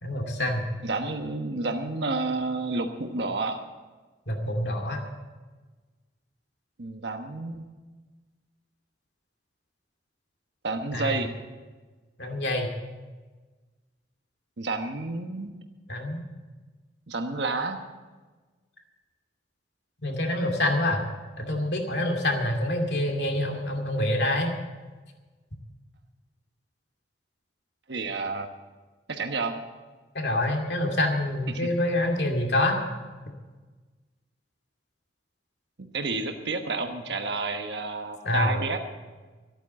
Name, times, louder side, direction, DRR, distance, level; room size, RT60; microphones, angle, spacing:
voice 1, 0.0-0.6 4.3-5.0 10.9-11.2 12.2-12.7 15.9-16.2 20.0-21.0 21.4-24.5 30.1-32.8 38.2-38.6, left 1 dB, 65° left, 2 dB, 2.4 m, -26 dB
voice 2, 0.8-3.6 6.8-7.7 10.6-11.3 14.6-15.5 17.1-17.8 27.9-28.5 29.1-29.6 31.5-31.7 35.9-38.8, right 3 dB, 70° right, 5 dB, 1.2 m, -30 dB
14.5 x 9.1 x 7.6 m, 1.3 s
head